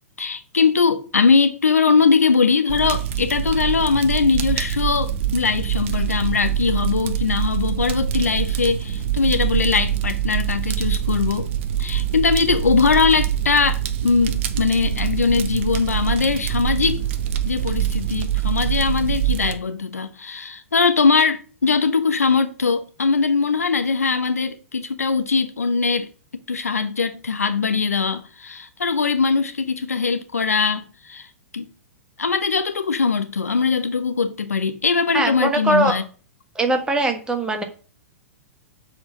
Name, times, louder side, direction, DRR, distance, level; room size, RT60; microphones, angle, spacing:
voice 1, 0.2-11.5 11.8-17.0 17.4-26.1 26.5-31.3 31.5-31.7 32.2-36.0, left 5 dB, 75° left, 1.0 m, -21 dB
Fire, 2.7-19.5, right 10 dB, 50° right, 1.0 m, -24 dB
voice 2, 35.1-36.0 36.5-37.6, right 2 dB, 10° right, 1.5 m, -21 dB
7.7 x 4.4 x 6.1 m
figure-of-eight pair, 105°, 8 cm